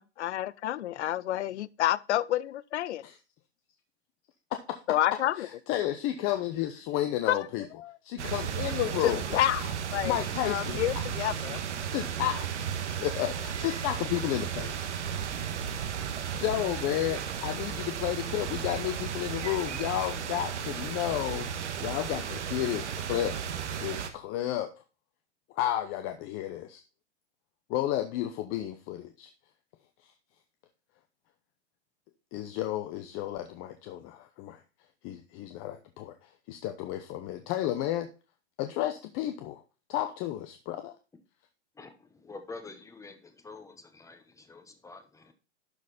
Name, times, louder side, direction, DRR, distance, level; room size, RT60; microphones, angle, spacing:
voice 1, 0.0-3.0 4.9-5.5 7.3-7.4 7.8-7.9 9.0-10.2 10.4-11.6, left 13 dB, 80° left, 0.5 m, -29 dB
voice 2, 5.4-7.6 8.0-9.2 10.0-11.0 11.9-12.5 13.0-15.5 16.3-21.5 21.8-23.4 23.8-24.7 25.6-26.8 27.7-29.3 32.3-34.6 35.0-38.1 38.6-39.6 39.9-40.9, left 13 dB, 40° left, 0.9 m, -32 dB
sound 1, 8.2-24.1, right 8 dB, 85° right, 1.4 m, -34 dB
voice 3, 41.8-45.3, left 3 dB, 10° left, 1.2 m, -47 dB
12.0 x 4.2 x 4.1 m
hypercardioid pair, 120°, 34 cm